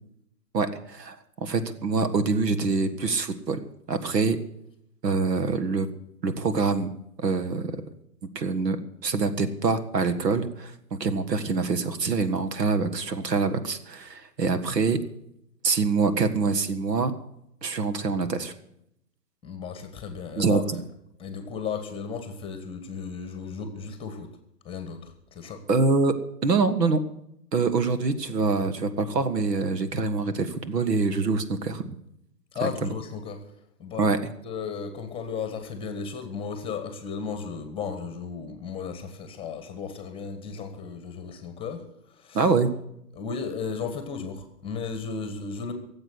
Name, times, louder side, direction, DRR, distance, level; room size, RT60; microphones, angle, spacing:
voice 1, 0.5-3.6 3.9-4.4 5.0-5.9 6.2-6.9 7.2-7.7 8.4-15.0 15.6-17.1 17.6-18.5 20.4-20.6 25.7-26.1 26.4-27.0 27.5-32.0 32.6-32.9 34.0-34.2 42.3-42.7, right 4 dB, 85° right, 10 dB, 1.8 m, -25 dB
voice 2, 19.4-20.6 21.2-24.3 24.6-25.6 32.5-33.4 33.8-34.1 34.4-42.5 43.1-45.7, left 5 dB, 10° left, 8 dB, 1.4 m, -35 dB
17.0 x 7.9 x 7.9 m, 0.76 s
hypercardioid pair, 145°, 48 cm